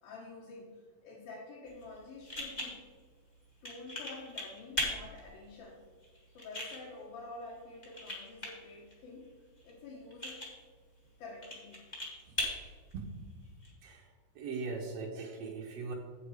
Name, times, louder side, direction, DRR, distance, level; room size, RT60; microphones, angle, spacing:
voice 1, 0.0-2.8 3.6-5.8 6.3-9.3 9.6-10.5 11.2-11.8, left 3 dB, 80° left, -5 dB, 3.2 m, -48 dB
sound 1, 1.7-13.7, left 1 dB, 20° left, 1.2 m, -42 dB
voice 2, 12.9-13.2 13.8-14.1 14.3-15.9, right 4 dB, 85° right, 0 dB, 1.4 m, -40 dB
8.4 x 7.8 x 4.9 m, 1.5 s
omnidirectional pair, 4.1 m